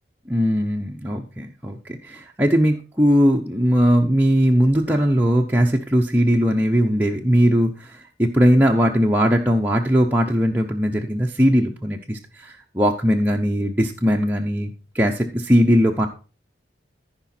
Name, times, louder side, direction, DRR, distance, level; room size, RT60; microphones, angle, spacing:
voice 1, 0.3-16.1, equal, 10° right, 0 dB, 0.7 m, -19 dB
14.5 x 5.0 x 4.3 m, 0.34 s
head